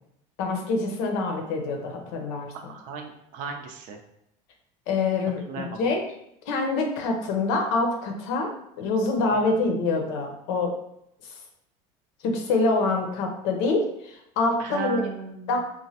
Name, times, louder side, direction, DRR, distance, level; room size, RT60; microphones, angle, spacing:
voice 1, 0.4-2.5 4.9-6.0 6.5-8.5 8.8-10.7 12.2-15.1 15.5-15.6, left 3 dB, 75° left, 3 dB, 0.6 m, -25 dB
voice 2, 2.7-4.0 5.5-5.8 14.6-15.6, right 6 dB, 55° right, 3 dB, 0.5 m, -35 dB
3.0 x 2.1 x 2.8 m, 0.76 s
supercardioid pair, 115°, 16 cm